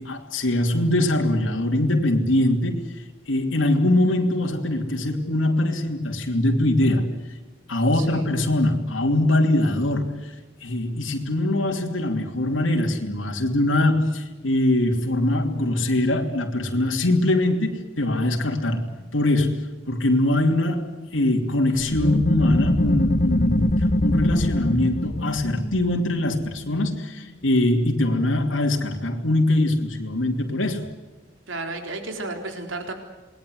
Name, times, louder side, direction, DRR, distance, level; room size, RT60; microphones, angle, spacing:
voice 1, 0.0-3.0 3.3-7.1 7.7-10.3 10.6-30.9, left 1 dB, 85° left, 2.9 m, -22 dB
voice 2, 7.9-8.3 31.5-32.9, right 2 dB, 80° right, 3.9 m, -32 dB
sound 1, 21.9-27.1, left 1 dB, 45° left, 1.1 m, -23 dB
28.0 x 21.0 x 7.8 m
head